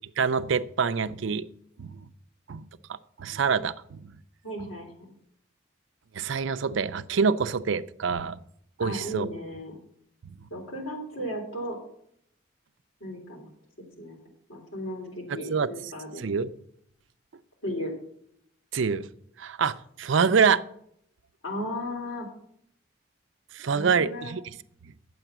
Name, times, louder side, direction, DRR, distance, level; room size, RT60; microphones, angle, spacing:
voice 1, 0.2-1.5 1.8-2.1 2.5-4.1 6.1-8.4 8.8-9.3 15.3-15.7 16.2-16.5 18.7-19.1 19.4-20.6 23.5-24.4, right 5 dB, 70° right, 0.5 m, -26 dB
voice 2, 4.4-4.9 8.8-9.8 10.5-11.8 13.0-13.5 14.0-14.2 14.5-16.2 17.6-17.9 21.4-22.3 23.7-24.4, equal, 85° left, 3.3 m, -35 dB
9.0 x 7.7 x 6.0 m
head